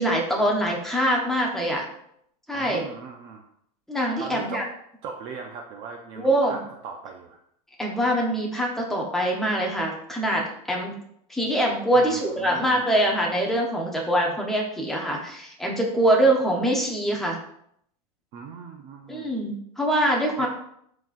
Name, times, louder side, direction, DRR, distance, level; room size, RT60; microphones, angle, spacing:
voice 1, 0.0-1.8 2.5-2.8 3.9-4.6 6.2-6.6 7.8-10.9 11.3-17.4 19.1-20.5, right 1 dB, ahead, -1 dB, 0.7 m, -24 dB
voice 2, 2.5-3.4 4.2-4.7 5.0-7.4 11.9-13.0 18.3-19.3 20.4-20.5, right 6 dB, 25° right, 3 dB, 0.4 m, -39 dB
11.5 x 4.1 x 2.5 m, 0.70 s
supercardioid pair, 175°, 21 cm